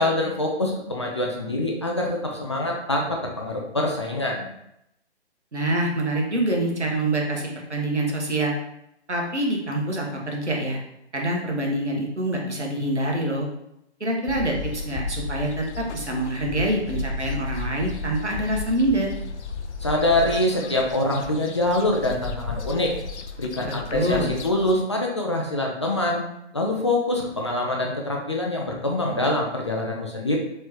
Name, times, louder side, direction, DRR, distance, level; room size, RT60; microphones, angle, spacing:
voice 1, 0.0-4.5 19.8-22.9 23.4-26.3 26.5-30.4, left 1 dB, 25° left, -1 dB, 0.4 m, -24 dB
voice 2, 5.5-8.5 9.1-10.8 11.1-13.5 14.0-19.1 23.6-24.4, right 1 dB, 85° right, 0 dB, 1.2 m, -25 dB
sound 1, 14.3-24.8, left 4 dB, 80° left, 0.5 m, -34 dB
4.7 x 3.1 x 3.0 m, 0.80 s
figure-of-eight pair, 135°, 34 cm